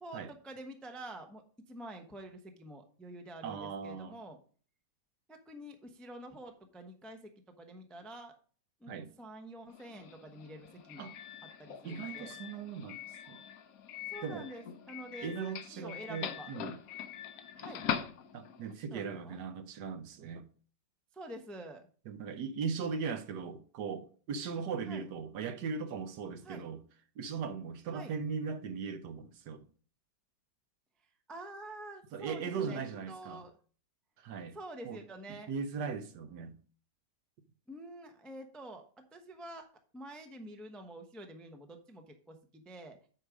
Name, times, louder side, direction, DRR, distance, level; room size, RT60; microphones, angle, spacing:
voice 1, 0.0-1.4 1.7-4.4 5.3-7.3 7.6-8.3 8.8-11.1 11.6-12.3 14.1-15.3 15.7-16.5 17.6-17.8 18.9-19.4 21.1-21.8 24.8-25.1 26.4-26.7 27.9-28.1 31.3-33.5 34.5-35.5 37.7-39.7 39.9-43.0, right 1 dB, ahead, 0.5 m, -47 dB
voice 2, 3.4-4.2 8.9-9.1 11.0-11.2 11.8-13.4 14.2-14.5 15.2-16.8 18.3-20.5 22.1-26.8 27.2-29.6 32.1-33.5 34.2-34.6 34.8-35.0 35.3-36.6, right 5 dB, 70° right, 1.2 m, -39 dB
Doorbell, 9.7-18.7, left 8 dB, 60° left, 1.0 m, -42 dB
8.7 x 4.9 x 5.0 m
omnidirectional pair, 2.0 m